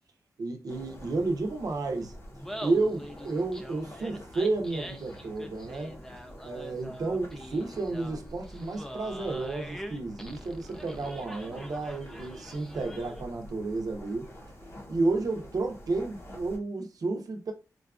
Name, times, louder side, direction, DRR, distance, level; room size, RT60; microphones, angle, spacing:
voice 1, 0.4-2.1 2.6-6.0 6.4-14.3 14.9-17.5, right 3 dB, 65° right, 0.7 m, -31 dB
sound 1, 0.7-16.6, equal, 40° left, 0.8 m, -48 dB
Laughter, 2.3-13.3, equal, 5° left, 0.4 m, -44 dB
3.8 x 2.3 x 2.4 m
wide cardioid pair, 95°, 7 cm